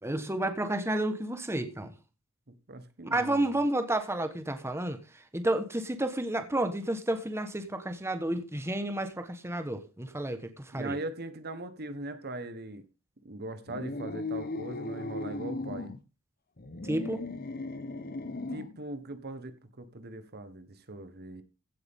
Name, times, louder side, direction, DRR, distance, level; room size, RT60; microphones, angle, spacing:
voice 1, 0.0-1.9 3.0-11.0 16.8-17.2, right 1 dB, 10° right, 1.3 m, -31 dB
voice 2, 2.5-3.6 10.7-12.8 13.2-15.9 18.5-21.4, right 2 dB, 50° right, 1.3 m, -40 dB
sound 1, 13.7-16.0 16.6-18.8, left 2 dB, 45° left, 1.1 m, -37 dB
16.0 x 8.3 x 3.7 m
head